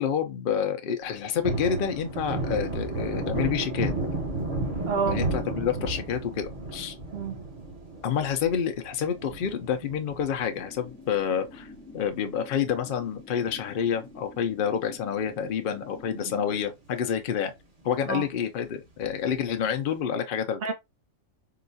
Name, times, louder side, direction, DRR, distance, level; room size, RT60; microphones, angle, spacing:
voice 1, 0.0-3.9 5.1-7.0 8.0-11.7 11.9-17.5 17.8-20.6, left 8 dB, 60° left, 0.6 m, -28 dB
Thunder, 1.0-11.8 12.1-12.2 12.6-14.1 14.4-14.5 14.9-15.7 16.1-16.2 16.5-16.6 19.0-19.5, right 2 dB, 35° right, 0.9 m, -33 dB
voice 2, 4.9-5.2 7.1-7.4 16.1-16.3 18.1-18.2 20.6-20.7, right 5 dB, 55° right, 0.8 m, -28 dB
sound 1, 10.5-16.6, left 3 dB, 15° left, 0.3 m, -48 dB
3.8 x 2.4 x 2.6 m
omnidirectional pair, 1.4 m